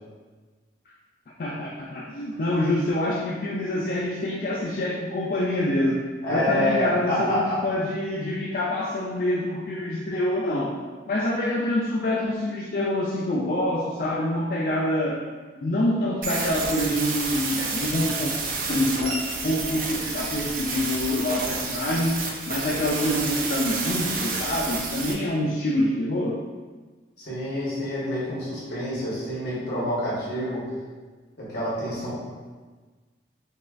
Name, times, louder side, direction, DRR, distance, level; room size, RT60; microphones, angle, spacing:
voice 1, 1.4-10.8 11.0-15.2 15.6-18.3 18.7-19.1 19.4-22.2 22.5-26.4, left 1 dB, 50° left, -3 dB, 0.3 m, -26 dB
voice 2, 6.2-7.6 27.2-30.6 31.4-32.1, equal, 70° left, -7 dB, 1.3 m, -27 dB
sound 1, 16.2-25.1, right 3 dB, 50° right, 0.4 m, -30 dB
5.3 x 2.3 x 2.5 m, 1.4 s
head